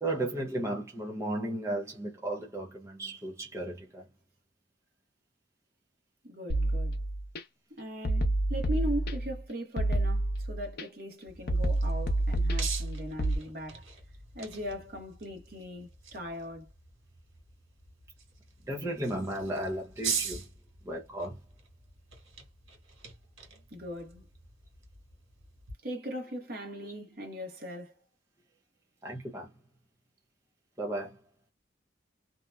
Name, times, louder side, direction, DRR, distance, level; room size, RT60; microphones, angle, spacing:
voice 1, 0.0-4.0 18.7-20.5 20.8-21.4 29.0-29.5 30.8-31.2, right 1 dB, 15° right, 0.5 m, -34 dB
voice 2, 6.2-7.0 7.8-13.9 14.3-16.7 23.7-24.3 25.8-27.9, equal, 50° right, 1.0 m, -39 dB
sound 1, 6.5-7.4 8.0-9.4 9.8-10.8 11.5-13.4, right 1 dB, 50° left, 0.6 m, -28 dB
sound 2, 11.3-25.7, right 6 dB, 85° right, 1.6 m, -43 dB
2.8 x 2.1 x 2.3 m
head